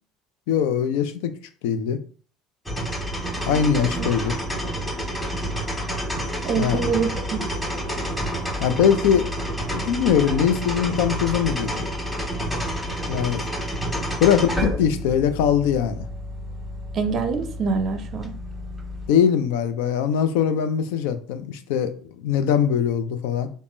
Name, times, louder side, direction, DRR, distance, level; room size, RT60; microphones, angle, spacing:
voice 1, 0.5-1.3 1.6-2.0 3.4-4.4 6.6-6.8 8.6-9.3 9.7-11.9 13.1-13.4 14.2-16.1 19.1-23.5, left 8 dB, 70° left, 0.3 m, -21 dB
sound 1, 2.6-19.1, equal, 10° left, 1.5 m, -29 dB
voice 2, 3.5-4.1 6.4-7.4 16.9-18.3, right 5 dB, 50° right, 0.4 m, -25 dB
3.4 x 2.0 x 2.5 m
hypercardioid pair, 65°, 0 cm